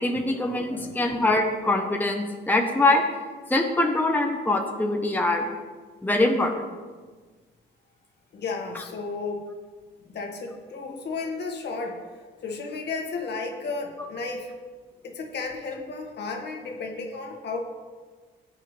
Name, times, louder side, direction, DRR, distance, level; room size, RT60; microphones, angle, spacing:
voice 1, 0.0-3.0 3.5-5.5 6.0-6.7, left 2 dB, 10° left, 2 dB, 1.1 m, -23 dB
voice 2, 0.7-1.1 8.3-9.5 10.1-12.0 12.4-14.5 15.0-17.6, left 4 dB, 60° left, 2 dB, 1.9 m, -33 dB
15.0 x 8.4 x 3.4 m, 1.5 s
cardioid pair, 90°, 20 cm